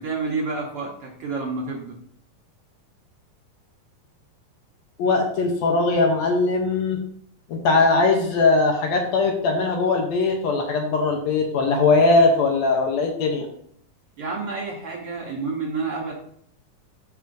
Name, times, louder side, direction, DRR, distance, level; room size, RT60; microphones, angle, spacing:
voice 1, 0.0-2.0 14.2-16.1, right 4 dB, 60° right, -1 dB, 1.6 m, -29 dB
voice 2, 5.0-7.0 7.5-13.5, left 3 dB, 70° left, 2 dB, 1.9 m, -20 dB
12.0 x 4.9 x 2.6 m, 0.68 s
omnidirectional pair, 3.6 m